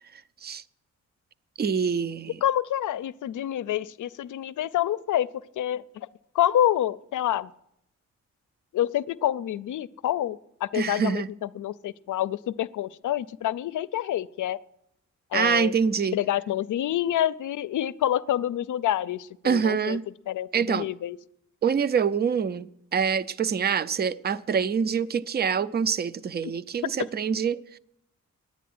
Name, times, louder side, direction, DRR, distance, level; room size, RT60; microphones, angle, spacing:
voice 1, 1.6-2.4 10.7-11.3 15.3-16.2 19.4-20.0 20.5-20.9 21.6-27.8, right 6 dB, 35° right, 0.4 m, -25 dB
voice 2, 2.4-5.3 5.6-6.1 6.3-7.5 8.7-14.6 15.3-15.7 16.1-20.0 20.3-21.2, left 12 dB, 85° left, 0.5 m, -27 dB
11.0 x 9.3 x 9.4 m
wide cardioid pair, 160°, 30 cm